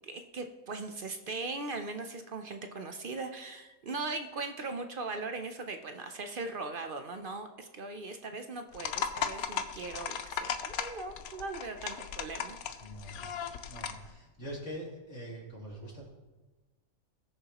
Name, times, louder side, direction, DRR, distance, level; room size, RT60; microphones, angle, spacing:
voice 1, 0.0-12.6, right 3 dB, 50° right, 7 dB, 0.6 m, -39 dB
sound 1, 8.7-14.1, left 8 dB, 90° left, 1.1 m, -37 dB
voice 2, 12.8-13.3 13.7-16.1, equal, 55° left, -4 dB, 3.1 m, -43 dB
19.5 x 6.7 x 3.0 m, 1.2 s
omnidirectional pair, 1.5 m